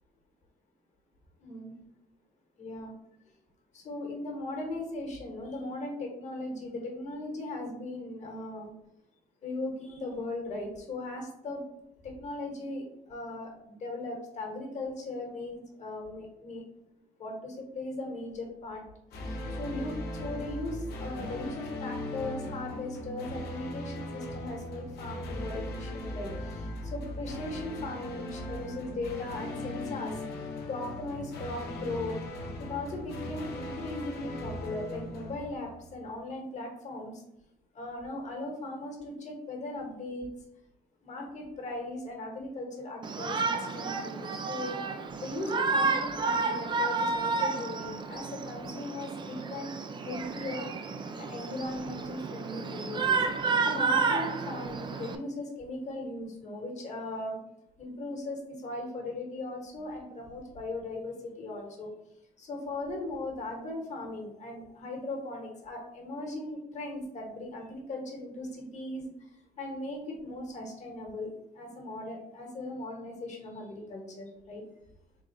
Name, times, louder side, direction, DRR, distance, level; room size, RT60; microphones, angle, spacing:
voice 1, 1.4-1.8 2.6-2.9 3.7-8.7 9.4-11.6 12.0-16.6 17.2-18.8 19.2-30.1 30.7-32.2 32.6-37.2 37.7-40.3 41.0-44.8 45.2-49.7 50.0-50.7 51.2-53.2 53.6-57.4 57.8-61.9 62.4-69.1 69.6-71.3 71.6-74.6, left 2 dB, 45° left, 0 dB, 1.3 m, -38 dB
sound 1, 19.1-36.2, left 1 dB, 70° left, 0.9 m, -39 dB
Shout, 43.0-55.2, right 4 dB, 25° right, 0.4 m, -31 dB
3.8 x 2.4 x 4.3 m, 0.83 s
cardioid pair, 110°, 17 cm